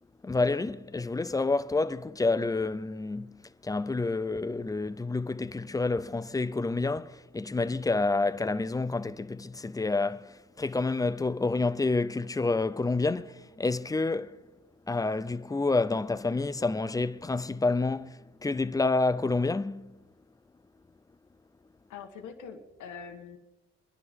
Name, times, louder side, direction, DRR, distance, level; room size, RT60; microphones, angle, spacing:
voice 1, 0.2-3.3 3.6-14.4 14.9-20.0, left 3 dB, 10° left, 0.5 m, -28 dB
voice 2, 21.9-23.4, left 6 dB, 80° left, 1.6 m, -43 dB
25.5 x 10.5 x 3.7 m
cardioid pair, 90°, 30 cm